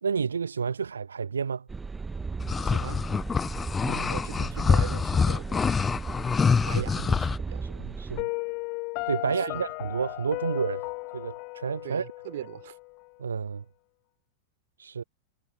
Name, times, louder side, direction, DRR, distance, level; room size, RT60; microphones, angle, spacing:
voice 1, 0.0-1.7 3.8-4.1 6.7-6.8 7.6-8.3 9.1-10.8 11.1-12.0 13.2-13.6 14.8-15.0, right 6 dB, 70° right, 1.4 m, -30 dB
sound 1, 1.7-8.2, right 4 dB, 15° right, 1.7 m, -36 dB
sound 2, 2.4-7.4, left 5 dB, 15° left, 0.6 m, -25 dB
voice 2, 2.6-3.1 4.1-5.7 6.7-7.9 9.2-9.6 11.8-12.8, right 13 dB, 55° right, 3.2 m, -40 dB
Piano, 8.2-13.1, left 31 dB, 45° left, 1.5 m, -35 dB
figure-of-eight pair, 90°, 0 cm